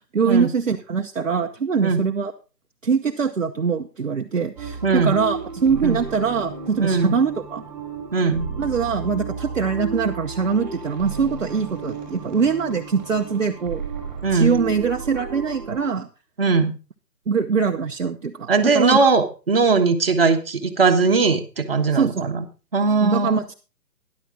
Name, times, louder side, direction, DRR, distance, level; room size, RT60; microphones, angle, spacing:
voice 1, 0.1-2.3 2.8-7.6 8.6-13.8 14.3-16.1 17.3-19.1 21.9-22.3 23.0-23.5, right 5 dB, 50° right, 3 dB, 0.9 m, -23 dB
sound 1, 4.6-15.9, right 5 dB, 10° right, 2.7 m, -33 dB
voice 2, 4.8-5.2 5.8-6.0 6.8-7.2 8.1-8.5 14.2-14.6 16.4-16.7 18.5-22.4 22.7-23.4, right 4 dB, 35° right, 4 dB, 1.3 m, -19 dB
13.0 x 11.0 x 3.7 m, 0.32 s
hypercardioid pair, 175°, 50 cm